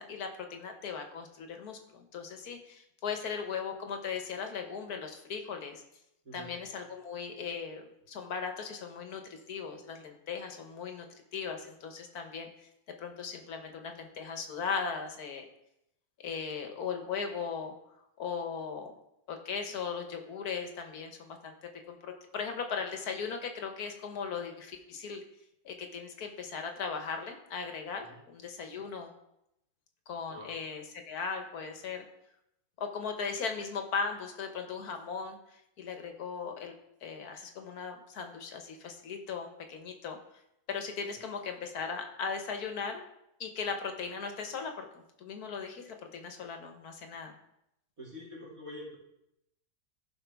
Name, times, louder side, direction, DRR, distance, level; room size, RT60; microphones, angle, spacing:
voice 1, 0.0-5.8 6.3-11.1 11.3-12.5 13.0-15.5 16.2-17.7 18.2-18.9 19.3-21.5 21.9-25.2 25.6-29.1 30.1-32.0 32.8-36.7 37.0-40.2 40.7-43.0 43.4-44.9 45.2-47.3, left 5 dB, 75° left, 5 dB, 1.6 m, -38 dB
voice 2, 48.0-49.0, left 1 dB, 65° right, -4 dB, 3.2 m, -45 dB
15.0 x 5.2 x 3.5 m, 0.83 s
omnidirectional pair, 1.6 m